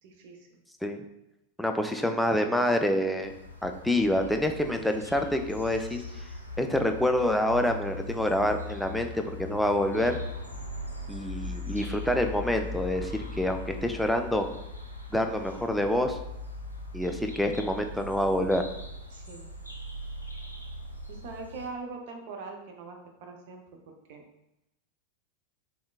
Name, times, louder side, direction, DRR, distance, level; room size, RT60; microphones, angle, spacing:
voice 1, 0.0-0.6 19.1-19.5 21.1-23.6 24.1-24.2, right 4 dB, 50° right, 2 dB, 0.6 m, -42 dB
voice 2, 1.6-3.3 3.6-6.0 6.6-10.2 11.1-14.5 15.1-16.2 16.9-18.6, left 1 dB, ahead, 5 dB, 0.3 m, -27 dB
sound 1, 3.2-21.7, left 2 dB, 85° left, 0.4 m, -40 dB
3.6 x 3.4 x 2.3 m, 0.89 s
figure-of-eight pair, 90°, 0 cm